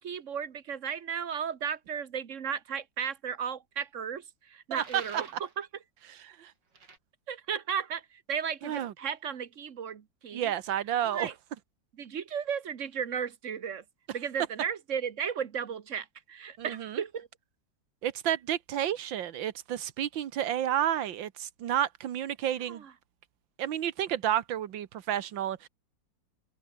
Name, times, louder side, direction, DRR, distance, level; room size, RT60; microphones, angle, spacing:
voice 1, 0.0-5.7 7.3-10.5 11.0-11.3 12.0-13.8 14.1-17.3 22.7-22.9, right 7 dB, 45° right, 1.2 m, -35 dB
sound 1, 4.8-5.6 6.7-7.0, right 4 dB, 70° right, 4.2 m, -49 dB
voice 2, 8.6-8.9 10.3-11.3 16.6-17.0 18.0-22.8 23.6-25.7, right 10 dB, 85° right, 1.8 m, -31 dB
open air
omnidirectional pair, 2.0 m